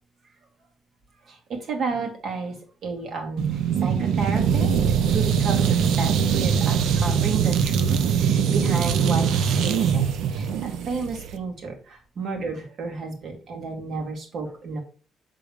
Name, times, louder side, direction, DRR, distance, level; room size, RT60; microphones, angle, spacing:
voice 1, 1.3-2.5 2.8-4.7 5.1-14.8, right 4 dB, 55° right, 2 dB, 2.1 m, -32 dB
sound 1, 3.4-11.4, right 7 dB, 85° right, 0.7 m, -22 dB
7.0 x 3.7 x 4.8 m, 0.39 s
cardioid pair, 135°, 0 cm